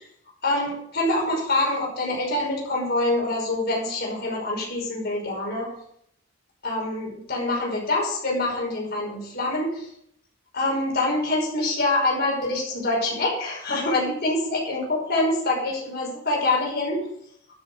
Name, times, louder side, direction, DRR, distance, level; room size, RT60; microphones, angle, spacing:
voice 1, 0.4-5.7 6.6-9.9 10.5-17.0, left 2 dB, 50° left, -2 dB, 5.8 m, -25 dB
13.0 x 7.7 x 6.5 m, 0.71 s
head